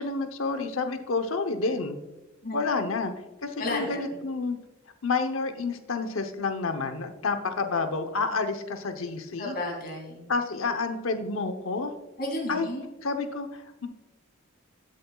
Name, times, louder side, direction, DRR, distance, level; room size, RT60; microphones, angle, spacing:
voice 1, 0.0-2.0 2.5-3.1 3.4-4.6 5.0-9.6 10.3-11.9 12.5-12.7 13.0-13.9, left 4 dB, 80° left, 7 dB, 0.9 m, -29 dB
voice 2, 3.6-4.2 9.4-10.3 12.2-12.9, left 1 dB, 45° left, 0 dB, 2.8 m, -33 dB
13.5 x 7.7 x 2.3 m, 1.1 s
head